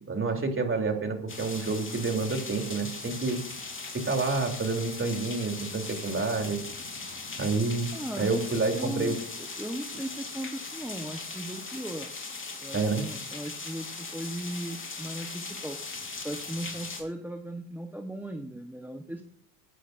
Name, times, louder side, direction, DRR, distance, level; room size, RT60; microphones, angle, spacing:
voice 1, 0.1-3.4 3.9-6.6 7.4-7.9 8.2-9.2 12.7-13.1, right 3 dB, 25° right, 3 dB, 3.5 m, -28 dB
sound 1, 1.3-17.0, left 3 dB, 25° left, 3.6 m, -39 dB
voice 2, 7.9-8.4 8.7-12.1 12.6-19.2, right 1 dB, 5° right, 5 dB, 1.2 m, -37 dB
21.0 x 11.5 x 2.7 m, 0.68 s
supercardioid pair, 80°, 48 cm